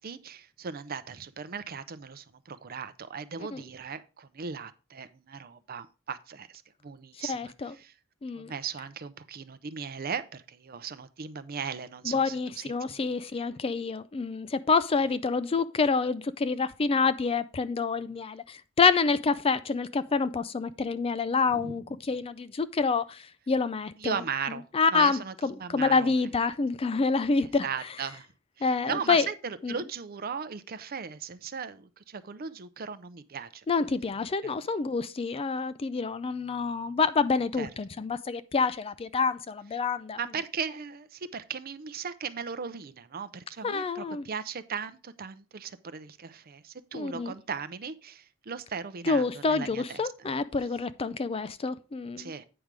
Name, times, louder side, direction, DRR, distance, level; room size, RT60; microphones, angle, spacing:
voice 1, 0.0-7.9 8.4-13.0 21.5-21.8 24.0-24.6 24.9-26.1 27.6-28.3 28.6-33.9 34.4-34.5 37.6-37.7 40.2-50.0 52.2-52.5, right 6 dB, 45° right, 0.6 m, -37 dB
voice 2, 7.2-7.7 8.2-8.5 12.0-24.2 24.7-27.7 28.6-29.3 29.6-29.7 33.7-40.2 43.6-44.2 46.9-47.3 49.0-52.3, left 4 dB, 25° left, 0.4 m, -27 dB
8.8 x 5.2 x 4.6 m
head